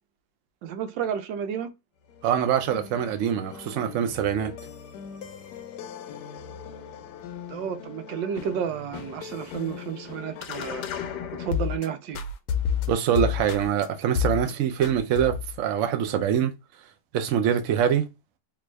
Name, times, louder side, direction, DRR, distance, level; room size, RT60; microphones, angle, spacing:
voice 1, 0.6-1.7 7.5-10.8 11.3-12.2, right 8 dB, 85° right, 1.3 m, -31 dB
sound 1, 2.1-11.9 12.1-13.9 14.2-14.5 14.8-15.6, left 8 dB, 75° left, 1.1 m, -33 dB
voice 2, 2.2-4.5 12.9-16.5 17.1-18.1, right 9 dB, 65° right, 0.8 m, -24 dB
3.4 x 2.5 x 3.1 m
omnidirectional pair, 1.9 m